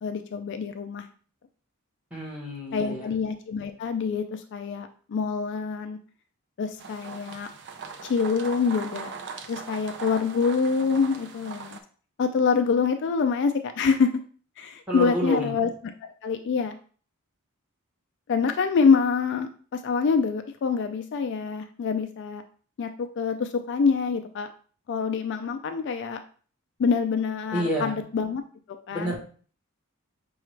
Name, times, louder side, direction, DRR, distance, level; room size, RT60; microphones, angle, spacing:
voice 1, 0.0-1.1 2.7-6.0 6.6-7.5 8.0-9.1 9.5-11.8 12.2-14.1 14.6-15.7 16.0-16.7 18.3-22.4 22.8-24.5 24.9-26.2 26.8-28.4 28.9-29.1, left 5 dB, 55° left, 6 dB, 0.3 m, -26 dB
voice 2, 2.1-3.1 14.9-15.5 27.5-28.0 28.9-29.1, equal, 5° right, -4 dB, 1.3 m, -29 dB
sound 1, 6.8-11.8, right 5 dB, 55° right, 0.5 m, -40 dB
5.7 x 2.3 x 3.2 m, 0.43 s
head